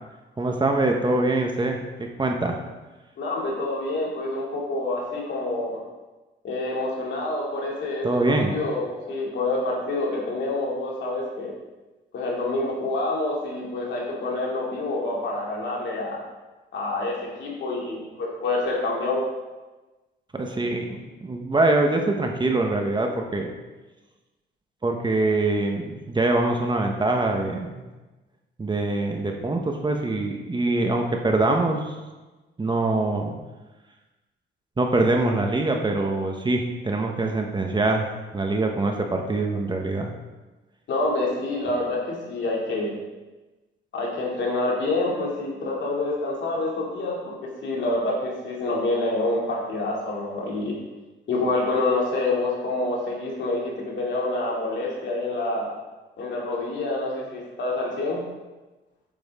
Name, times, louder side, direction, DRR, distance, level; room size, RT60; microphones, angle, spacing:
voice 1, 0.4-2.6 8.0-8.6 20.3-23.5 24.8-27.8 28.6-31.9 32.6-33.4 34.8-38.1 38.3-40.1, right 2 dB, 25° right, 2 dB, 1.2 m, -24 dB
voice 2, 3.2-5.8 6.4-11.5 12.1-16.2 16.7-19.2 40.9-42.9 43.9-50.8 51.3-55.7 56.2-58.2, left 2 dB, 65° left, -3 dB, 2.7 m, -27 dB
8.9 x 7.8 x 3.7 m, 1.2 s
cardioid pair, 90°, 20 cm